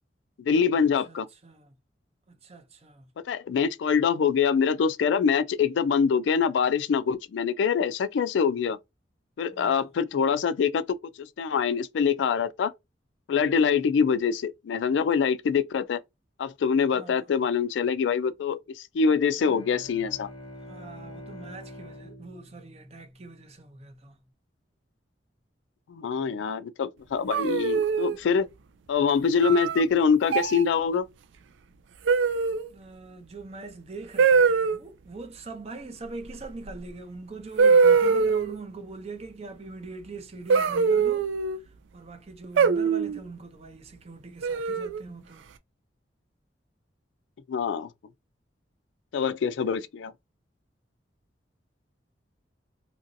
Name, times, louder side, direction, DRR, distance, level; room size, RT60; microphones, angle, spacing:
voice 1, 0.4-1.3 3.3-8.8 9.4-10.8 11.4-12.7 13.3-16.0 16.4-20.3 25.9-28.5 28.9-31.1 47.5-47.9 49.1-50.1, left 6 dB, 80° left, 0.3 m, -24 dB
voice 2, 1.1-1.7 2.3-3.1 9.5-9.9 16.9-17.3 20.7-24.2 32.7-45.4, right 3 dB, 35° right, 0.6 m, -42 dB
Bowed string instrument, 19.3-23.8, left 1 dB, 30° left, 0.7 m, -45 dB
sound 1, 27.3-28.2 29.4-29.8 30.3-30.6 32.1-32.7 34.2-34.8 36.7-36.8 37.6-38.6 40.5-41.6 42.6-43.2 44.4-45.0, right 5 dB, 90° right, 0.4 m, -22 dB
2.9 x 2.6 x 2.6 m
head